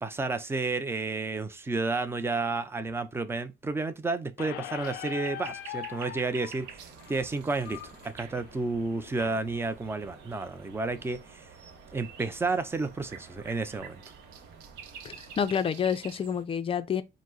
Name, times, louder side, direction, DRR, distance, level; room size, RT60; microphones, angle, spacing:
voice 1, 0.0-6.8 7.1-11.5 11.9-14.0, right 3 dB, 15° right, 0.6 m, -31 dB
Squeak, 4.4-9.4, left 13 dB, 85° left, 0.5 m, -42 dB
sound 1, 4.7-16.4, right 7 dB, 85° right, 0.8 m, -49 dB
sound 2, 6.6-15.5, right 4 dB, 65° right, 1.2 m, -53 dB
voice 2, 15.0-17.0, left 7 dB, 35° left, 0.5 m, -29 dB
5.0 x 2.1 x 3.9 m
cardioid pair, 110°, 17 cm